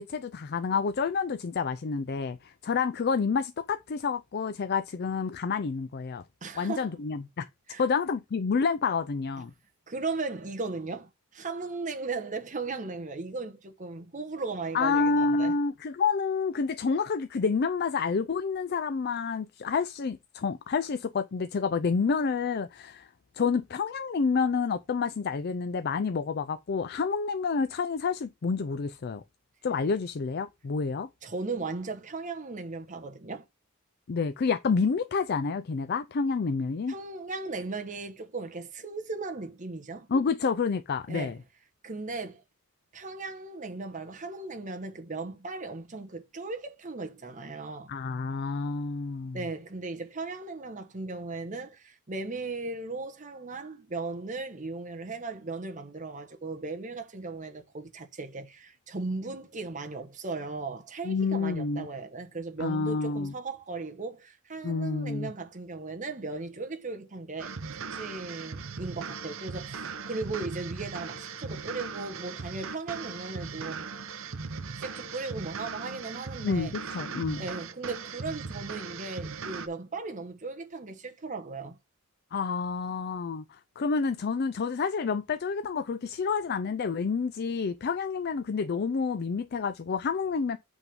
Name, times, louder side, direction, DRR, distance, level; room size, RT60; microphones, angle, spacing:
voice 1, 0.0-6.2 6.6-7.5 7.8-9.5 14.7-23.1 23.3-29.2 29.6-31.1 34.1-36.9 40.1-41.4 47.9-49.4 61.0-61.9 62.6-63.3 64.6-65.3 76.4-77.4 82.3-90.6, left 5 dB, 45° left, 0.4 m, -29 dB
voice 2, 6.4-6.9 7.7-7.8 9.9-15.5 31.2-33.4 36.9-40.1 41.1-41.4 41.8-42.4 42.9-47.9 49.3-67.5 67.9-73.9 74.7-76.9 77.4-81.8, right 3 dB, 35° right, 1.1 m, -37 dB
sound 1, 67.4-79.7, right 5 dB, 60° right, 0.8 m, -38 dB
8.3 x 3.5 x 5.2 m
head